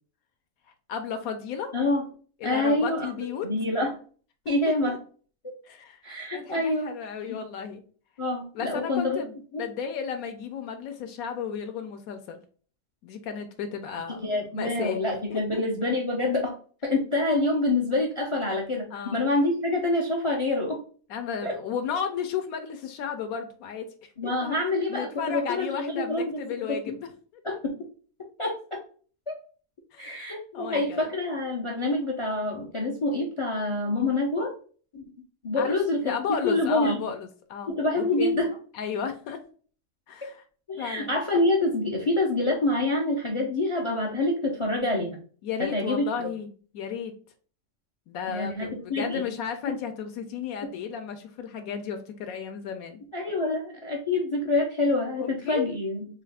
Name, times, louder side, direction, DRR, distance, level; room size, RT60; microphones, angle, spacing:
voice 1, 0.9-1.7 2.4-3.5 4.5-5.0 5.6-6.0 6.3-7.8 8.5-12.4 13.0-15.0 15.3-15.6 18.9-19.2 21.1-24.6 24.9-27.4 29.9-31.1 35.6-35.8 36.0-38.4 38.7-39.4 40.1-40.4 40.8-41.1 45.4-46.5 46.7-47.1 48.1-53.0 55.2-55.7, left 7 dB, 80° left, 6 dB, 1.0 m, -34 dB
voice 2, 1.7-2.1 2.4-3.9 4.5-5.0 5.4-5.5 6.0-6.9 8.2-9.2 9.5-9.6 14.2-16.5 16.8-20.8 21.4-21.5 24.2-26.4 26.7-26.9 27.4-27.8 28.4-28.8 30.0-34.5 34.9-35.0 35.4-36.1 36.4-37.0 37.7-38.5 40.7-45.2 45.6-46.3 48.3-49.3 53.1-56.1, left 2 dB, 55° left, 2 dB, 0.3 m, -26 dB
3.8 x 2.3 x 3.3 m, 0.42 s
omnidirectional pair, 1.5 m